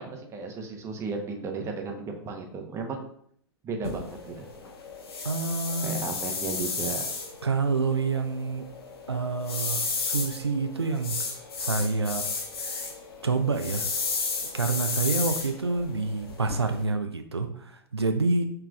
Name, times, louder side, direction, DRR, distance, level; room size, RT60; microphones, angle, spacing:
voice 1, 0.0-3.1 3.6-4.5 5.8-7.0, right 4 dB, 20° right, 3 dB, 0.8 m, -34 dB
sound 1, 3.8-16.8, left 4 dB, 70° left, 0.8 m, -33 dB
voice 2, 5.2-6.1 7.4-8.7 9.1-11.2 11.6-12.3 13.2-13.8 14.5-18.5, right 4 dB, 90° right, 7 dB, 0.4 m, -27 dB
5.8 x 3.3 x 2.3 m, 0.63 s
figure-of-eight pair, 100°, 13 cm